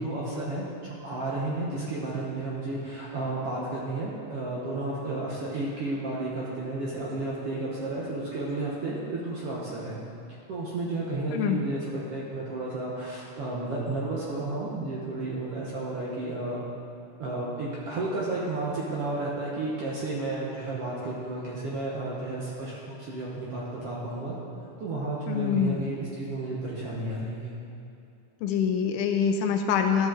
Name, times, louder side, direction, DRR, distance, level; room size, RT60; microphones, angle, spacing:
voice 1, 0.0-10.0 10.5-16.7 17.2-24.4 24.8-27.5, right 2 dB, 65° right, -5 dB, 1.6 m, -32 dB
voice 2, 11.3-11.6 25.3-25.9 28.4-30.1, left 7 dB, 80° left, 5 dB, 2.0 m, -25 dB
13.0 x 6.2 x 3.8 m, 2.6 s
omnidirectional pair, 3.8 m